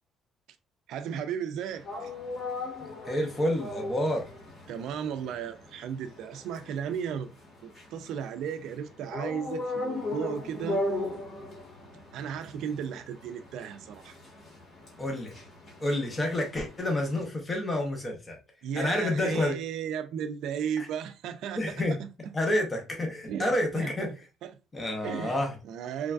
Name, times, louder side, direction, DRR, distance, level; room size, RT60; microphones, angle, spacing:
voice 1, 0.9-2.1 4.7-7.3 7.6-10.8 12.1-14.2 18.6-22.3 23.3-24.2 24.4-24.6 25.0-25.4 25.6-26.1, right 8 dB, 65° right, 0.3 m, -35 dB
sound 1, 1.7-17.2, left 2 dB, 30° left, 1.2 m, -38 dB
voice 2, 2.8-4.2 15.0-15.3 15.8-18.4 18.7-19.6 20.8-20.9 21.6-22.0 22.3-24.1 24.7-25.5, left 1 dB, 15° left, 0.6 m, -29 dB
3.1 x 2.3 x 2.3 m
cardioid pair, 175°, 0 cm